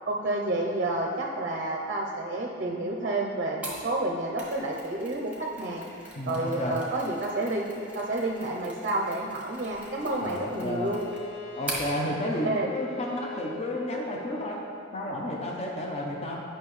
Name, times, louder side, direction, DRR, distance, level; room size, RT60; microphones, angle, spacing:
voice 1, 0.1-5.9 6.3-7.7 7.9-11.1 12.4-12.7, right 2 dB, 45° right, 0 dB, 0.5 m, -30 dB
Mechanisms, 3.6-11.9, right 1 dB, 10° right, 1.2 m, -42 dB
voice 2, 6.1-6.8 10.2-11.0 11.6-14.6 14.9-16.4, left 1 dB, 30° left, -1 dB, 0.7 m, -32 dB
Bowed string instrument, 9.5-14.5, left 3 dB, 70° left, 0.8 m, -44 dB
8.9 x 5.6 x 3.1 m, 2.5 s
head